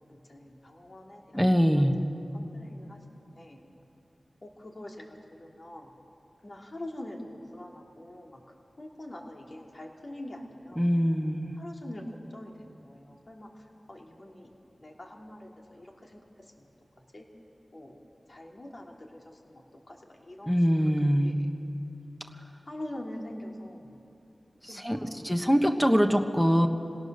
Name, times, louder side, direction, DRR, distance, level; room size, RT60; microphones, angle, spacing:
voice 1, 0.0-3.6 4.4-5.9 6.4-8.4 8.8-10.9 11.6-12.0 12.3-13.5 13.9-14.5 14.8-16.2 16.6-16.7 17.1-17.3 17.7-18.0 18.3-20.5 20.8-21.5 22.7-23.9 24.9-25.6, left 1 dB, 45° left, 0 dB, 2.8 m, -44 dB
voice 2, 1.3-1.9 10.8-11.5 20.5-21.4 24.7-25.0 25.2-26.7, equal, 5° left, 5 dB, 1.3 m, -23 dB
26.0 x 17.5 x 6.7 m, 2.8 s
wide cardioid pair, 60°, 0 cm